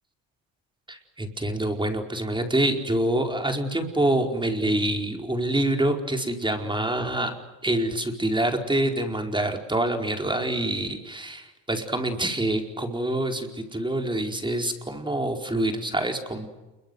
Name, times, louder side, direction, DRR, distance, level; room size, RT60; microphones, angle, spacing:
voice 1, 0.9-7.3 7.6-16.5, right 1 dB, 10° right, 4 dB, 4.7 m, -26 dB
28.5 x 23.5 x 8.1 m, 1.1 s
cardioid pair, 110°, 43 cm